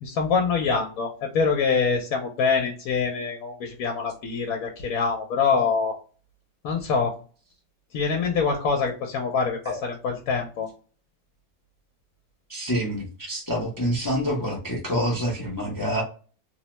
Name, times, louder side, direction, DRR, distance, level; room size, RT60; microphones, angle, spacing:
voice 1, 0.0-5.9 6.6-7.1 7.9-10.7, left 5 dB, 80° left, 2 dB, 1.1 m, -25 dB
voice 2, 12.5-16.0, equal, 25° left, -3 dB, 0.5 m, -27 dB
2.9 x 2.1 x 2.9 m, 0.37 s
omnidirectional pair, 1.5 m